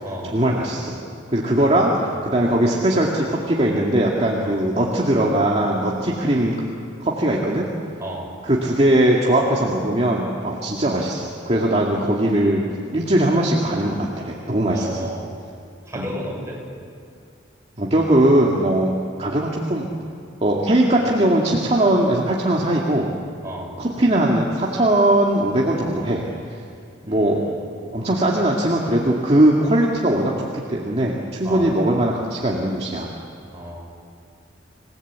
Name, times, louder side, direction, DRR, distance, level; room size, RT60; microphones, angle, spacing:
voice 1, 0.2-1.0 1.3-6.5 7.0-7.7 8.4-12.6 12.9-15.1 15.9-16.1 17.8-18.9 19.2-19.9 20.4-23.1 23.8-26.2 27.1-27.4 27.9-33.1, right 1 dB, 35° right, -3 dB, 2.2 m, -20 dB
voice 2, 1.6-2.1 4.4-4.6 8.0-8.3 14.7-15.3 15.9-16.6 23.4-23.7 27.0-27.8 31.4-31.6 33.5-33.8, equal, 15° right, -3 dB, 6.7 m, -33 dB
27.5 x 18.5 x 8.2 m, 2.4 s
head